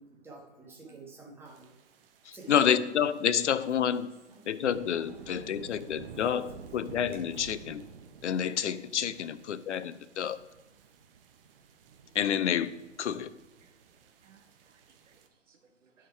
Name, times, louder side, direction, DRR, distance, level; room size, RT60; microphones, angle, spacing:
voice 1, 0.0-1.8 2.3-3.0 3.3-4.5 5.0-6.7 7.1-7.2, right 2 dB, 5° right, 1.6 m, -52 dB
sound 1, 1.4-15.3, right 6 dB, 50° right, 1.0 m, -51 dB
voice 2, 2.3-4.2 4.5-7.8 8.2-10.4 12.1-13.3, left 8 dB, 70° left, 0.7 m, -29 dB
voice 3, 13.6-16.1, right 6 dB, 75° right, 1.5 m, -65 dB
11.0 x 5.1 x 4.5 m
hypercardioid pair, 135°, 37 cm